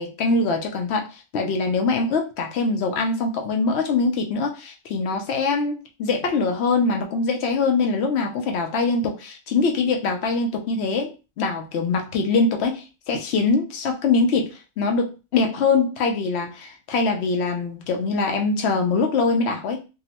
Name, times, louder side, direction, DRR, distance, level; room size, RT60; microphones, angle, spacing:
voice 1, 0.0-14.5 14.8-19.8, left 4 dB, 70° left, 3 dB, 0.6 m, -23 dB
3.7 x 2.0 x 2.8 m, 0.30 s
omnidirectional pair, 1.7 m